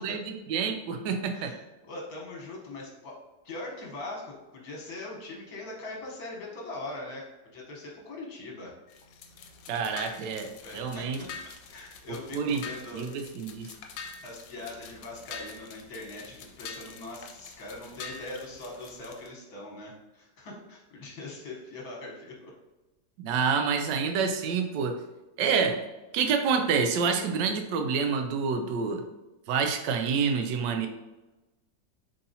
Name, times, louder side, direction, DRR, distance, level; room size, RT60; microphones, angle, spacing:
voice 1, 0.0-1.5 9.7-11.2 12.3-12.6 12.9-13.7 23.2-25.0 25.4-25.8 26.1-29.0 29.5-30.9, right 5 dB, 80° right, 6 dB, 1.2 m, -28 dB
voice 2, 1.3-8.7 10.6-13.1 14.2-22.5, left 2 dB, 60° left, -2 dB, 1.5 m, -41 dB
sound 1, 8.9-19.3, left 5 dB, 80° left, 1.2 m, -45 dB
4.0 x 3.7 x 2.7 m, 1.1 s
omnidirectional pair, 1.9 m